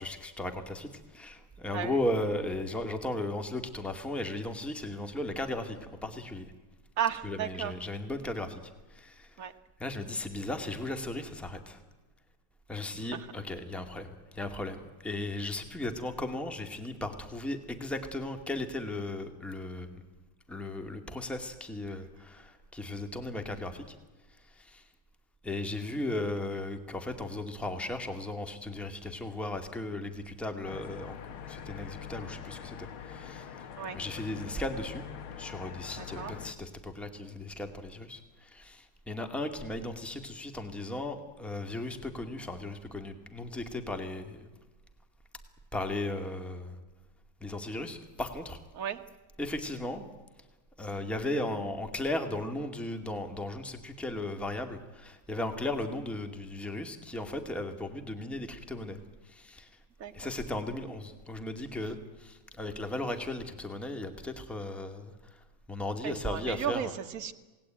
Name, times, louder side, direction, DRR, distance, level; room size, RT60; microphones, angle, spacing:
voice 1, 0.0-6.5 7.2-9.5 9.8-11.8 12.7-20.0 20.5-24.0 24.3-24.9 25.4-33.7 33.9-35.1 35.4-44.5 45.7-46.8 47.4-48.6 49.4-50.0 50.8-59.0 59.2-59.8 60.1-66.9, left 1 dB, ahead, 6 dB, 2.1 m, -36 dB
voice 2, 1.7-2.0 7.0-7.7 9.4-9.5 13.1-13.3 33.8-34.0 36.0-36.3 48.7-49.0 60.0-60.3 66.0-67.3, right 8 dB, 45° right, 5 dB, 1.7 m, -34 dB
sound 1, 30.6-36.5, left 8 dB, 80° left, 2.1 m, -43 dB
27.5 x 19.5 x 9.0 m, 1.2 s
omnidirectional pair, 2.3 m